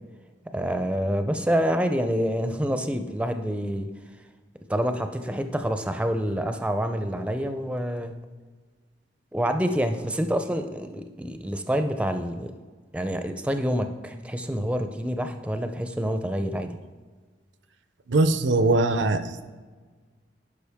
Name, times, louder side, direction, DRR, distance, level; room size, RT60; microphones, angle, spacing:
voice 1, 0.5-3.9 4.7-8.2 9.3-12.5 12.9-16.8, equal, 5° right, 8 dB, 0.4 m, -27 dB
voice 2, 18.1-19.4, right 2 dB, 85° right, 11 dB, 0.5 m, -21 dB
11.0 x 4.9 x 3.5 m, 1.4 s
head